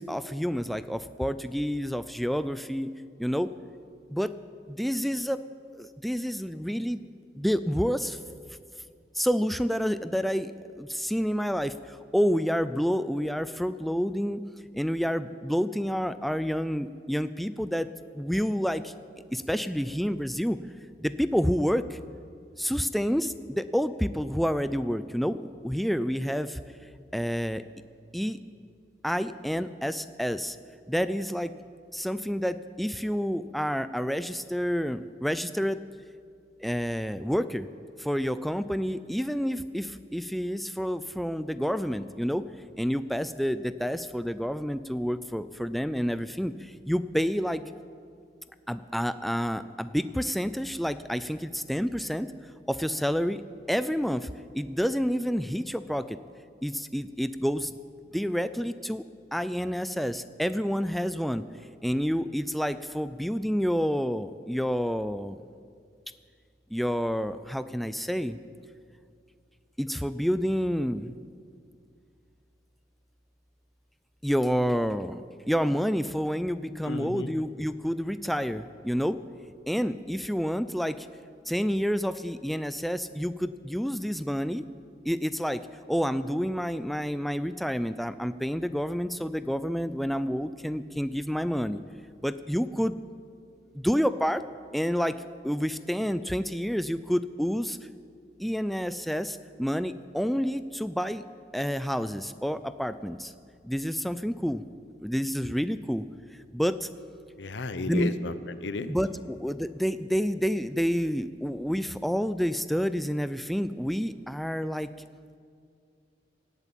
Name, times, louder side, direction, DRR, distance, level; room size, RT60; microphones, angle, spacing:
voice 1, 0.0-2.9 3.2-3.5 4.1-4.3 4.7-5.4 5.7-7.0 7.4-8.2 9.1-14.4 14.7-17.9 18.1-18.9 19.3-20.6 21.0-22.0 22.6-26.6 27.1-27.6 28.1-28.4 29.0-30.6 30.9-31.5 31.9-35.8 36.6-37.7 38.0-42.5 42.8-47.6 48.7-52.3 52.7-53.4 53.7-54.3 54.5-56.2 56.6-57.7 58.1-59.0 59.3-61.4 61.8-65.4 66.7-68.4 69.8-71.1 74.2-79.2 79.7-81.1 81.5-84.6 85.1-85.6 85.9-91.8 92.2-93.0 93.7-94.4 94.7-97.8 98.4-101.2 101.5-103.3 103.6-104.6 105.0-106.0 106.5-106.9 107.9-108.1 108.9-114.9, equal, ahead, 13 dB, 0.3 m, -29 dB
voice 2, 76.9-77.3 107.4-108.9, left 3 dB, 80° left, 12 dB, 0.8 m, -33 dB
17.0 x 8.2 x 9.0 m, 2.2 s
head